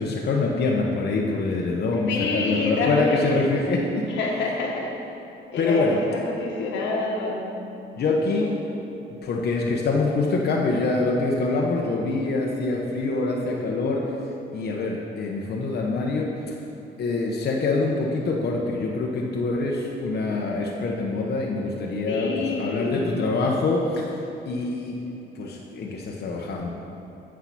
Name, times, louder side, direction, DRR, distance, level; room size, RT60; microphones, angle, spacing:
voice 1, 0.0-4.1 5.6-6.0 8.0-8.6 9.2-16.6 17.0-25.0 25.3-26.7, left 3 dB, 60° left, -2 dB, 0.8 m, -25 dB
voice 2, 2.1-3.2 4.2-4.9 5.5-7.5 22.1-23.2, left 3 dB, 90° left, -2 dB, 1.4 m, -27 dB
8.3 x 4.7 x 5.9 m, 3.0 s
cardioid pair, 95°, 19 cm